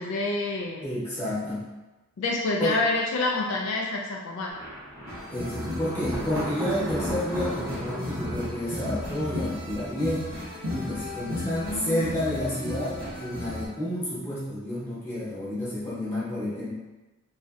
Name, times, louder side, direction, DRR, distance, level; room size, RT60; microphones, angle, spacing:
voice 1, 0.0-0.9 2.2-4.5 11.3-12.1, left 2 dB, 65° left, -2 dB, 0.4 m, -28 dB
voice 2, 0.8-1.7 2.6-2.8 5.3-10.3 10.7-16.7, left 1 dB, 10° left, -10 dB, 0.9 m, -30 dB
Thunder, 4.5-10.3, equal, 10° right, 0.6 m, -36 dB
sound 1, 5.1-13.7, left 1 dB, 85° right, 1.1 m, -35 dB
3.1 x 2.6 x 2.4 m, 1.1 s
head